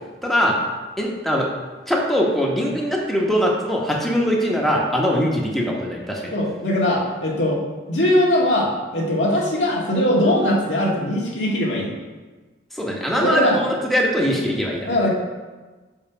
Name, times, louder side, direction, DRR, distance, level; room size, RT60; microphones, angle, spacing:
voice 1, 0.2-0.6 1.0-1.5 1.9-6.3 12.7-14.9, equal, ahead, -2 dB, 1.1 m, -21 dB
voice 2, 6.3-11.9 13.2-13.6 14.9-15.1, left 1 dB, 90° left, -3 dB, 1.7 m, -21 dB
6.4 x 5.5 x 5.0 m, 1.3 s
head